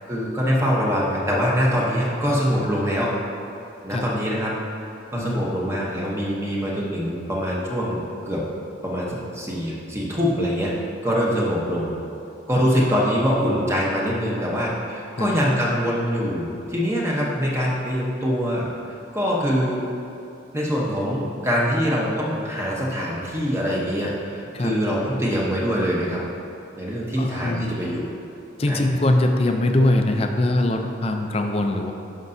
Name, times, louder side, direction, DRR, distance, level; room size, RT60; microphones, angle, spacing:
voice 1, 0.1-3.1 3.8-4.6 5.1-8.4 8.8-10.7 11.0-12.0 12.5-18.7 19.1-19.8 20.5-26.2 26.8-28.1 28.7-28.8, equal, 15° right, -4 dB, 0.9 m, -24 dB
voice 2, 5.1-5.4 15.2-15.3 24.5-24.7 27.2-27.7 28.6-31.9, left 1 dB, 30° left, 4 dB, 0.4 m, -22 dB
11.0 x 5.3 x 2.7 m, 2.7 s
head